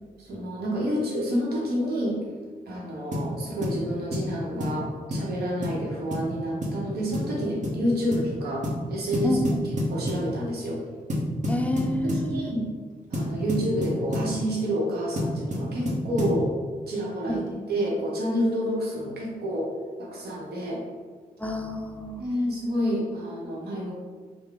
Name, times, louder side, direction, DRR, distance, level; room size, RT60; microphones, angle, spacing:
voice 1, 0.2-2.2 2.7-8.6 8.9-9.4 9.9-10.8 12.0-12.6 13.1-16.5 16.9-17.4 17.7-19.7 20.0-20.8 22.2-23.9, equal, 85° right, -3 dB, 0.9 m, -29 dB
sound 1, 3.1-3.3 3.6-3.8 4.1-4.3 4.6-4.8 5.1-5.3 5.6-5.8 6.1-6.3 6.6-6.8 7.1-7.3 7.6-7.8 8.1-8.3 8.6-8.8 9.1-10.3 11.1-12.3 13.1-14.3 15.2-16.4, left 1 dB, 50° right, 0.9 m, -29 dB
voice 2, 9.2-9.6 11.5-12.5 17.3-17.4 21.4-22.3, left 1 dB, 10° left, 3 dB, 0.3 m, -28 dB
3.7 x 2.1 x 3.5 m, 1.5 s
cardioid pair, 65°, 16 cm